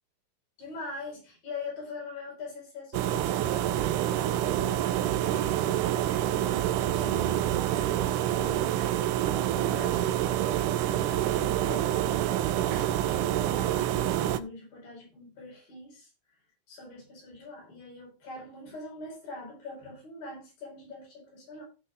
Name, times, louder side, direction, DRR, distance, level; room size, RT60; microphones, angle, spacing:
voice 1, 0.6-16.1 16.7-21.6, left 3 dB, 80° left, -2 dB, 6.5 m, -44 dB
sound 1, 2.9-14.4, right 12 dB, 80° right, 2.0 m, -27 dB
15.0 x 6.0 x 3.5 m, 0.30 s
omnidirectional pair, 4.0 m